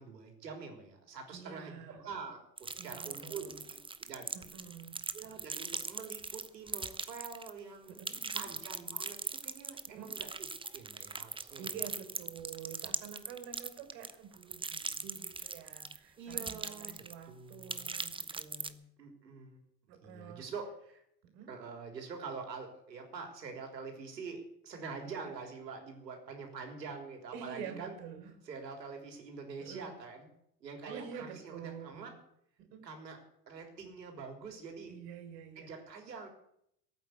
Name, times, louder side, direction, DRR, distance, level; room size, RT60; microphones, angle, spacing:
voice 1, 0.0-4.3 5.1-8.0 8.4-10.3 10.7-11.9 16.2-17.9 19.0-19.6 20.0-21.0 21.5-27.9 28.5-30.3 30.6-32.1 32.8-33.2 33.5-35.0 35.6-36.3, right 5 dB, 90° right, 4 dB, 3.8 m, -45 dB
voice 2, 1.3-2.0 2.8-3.6 4.3-5.0 7.9-8.5 9.9-10.1 11.6-18.8 19.9-20.5 21.2-21.5 25.0-25.3 27.3-28.3 29.6-30.0 30.9-32.1 32.6-32.8 34.9-35.8, right 7 dB, 65° right, 5 dB, 4.3 m, -48 dB
sound 1, 2.6-7.6 7.9-16.0 16.3-17.2 17.5-18.7, right 4 dB, 10° right, 0.9 m, -40 dB
17.0 x 9.1 x 8.1 m, 0.74 s
hypercardioid pair, 80°, 49 cm